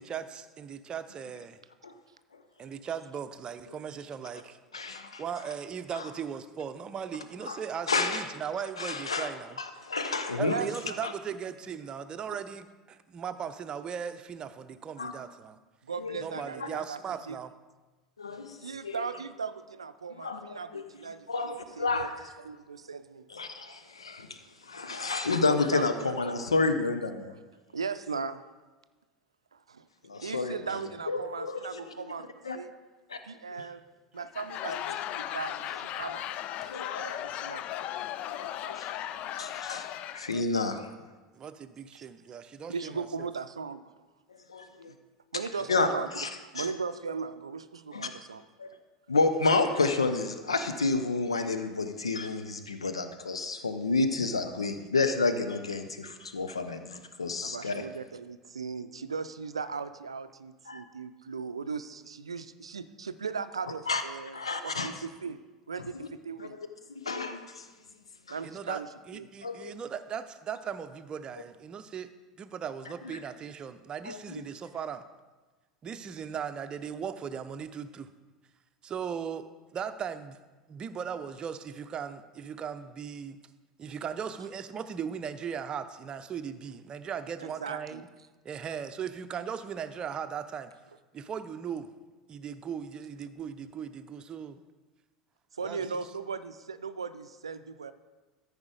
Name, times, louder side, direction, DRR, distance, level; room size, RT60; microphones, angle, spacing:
voice 1, 0.0-1.6 2.6-4.6 5.2-9.6 10.4-15.6 16.2-17.5 41.3-43.3 45.7-45.8 68.4-68.8 69.1-72.1 72.4-75.0 75.8-78.1 78.8-80.4 80.7-83.4 83.8-88.1 88.4-90.7 91.1-91.9 92.3-94.6 95.6-95.8, right 7 dB, 30° right, 10 dB, 0.6 m, -38 dB
voice 2, 4.7-5.2 5.9-6.0 7.5-7.6 7.9-8.3 8.8-9.3 9.6-10.6 11.0-11.1 15.0-15.1 16.0-16.2 18.2-19.0 20.2-20.8 21.3-22.1 23.3-24.3 24.6-27.3 30.1-31.6 32.4-32.6 33.1-33.2 33.5-33.6 36.7-37.2 38.3-38.9 39.4-39.9 40.1-40.8 44.5-44.9 45.7-45.9 46.2-46.3 46.6-46.7 47.9-48.1 48.6-48.7 49.1-57.8 60.7-60.8 63.9-64.0 64.3-64.9 66.4-66.5 67.0-67.6 68.3-68.4 69.4-69.7 74.0-74.4, left 3 dB, 85° left, 8 dB, 0.6 m, -30 dB
voice 3, 10.4-11.0 15.8-17.0 17.3-17.4 18.6-22.1 22.4-23.3 25.3-26.5 27.7-28.4 29.5-29.9 30.2-32.3 32.5-32.7 33.2-33.8 34.1-36.3 36.6-37.7 40.3-40.4 41.9-42.1 42.7-43.8 44.9-45.0 45.3-46.1 46.5-48.4 57.4-65.4 65.7-66.6 68.3-68.9 69.1-69.3 87.4-88.0 95.5-97.9, right 5 dB, 85° right, 12 dB, 0.5 m, -38 dB
Laughter / Crowd, 34.2-40.4, left 12 dB, 45° left, 0.4 m, -37 dB
13.5 x 5.0 x 4.9 m, 1.3 s
figure-of-eight pair, 75°, 3 cm